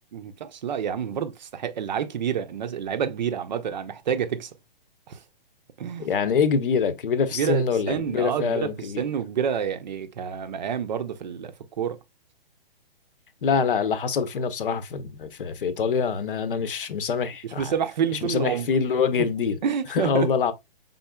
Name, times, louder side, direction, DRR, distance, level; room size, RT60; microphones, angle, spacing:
voice 1, 0.1-4.5 5.1-5.2 5.8-6.1 7.3-12.0 17.4-18.7 19.2-19.3 19.6-20.3, right 8 dB, 45° right, 0.6 m, -28 dB
voice 2, 6.0-9.0 13.4-17.7 18.2-19.6 19.9-20.5, left 6 dB, 60° left, 0.8 m, -25 dB
5.6 x 3.9 x 2.2 m
hypercardioid pair, 160°, 30 cm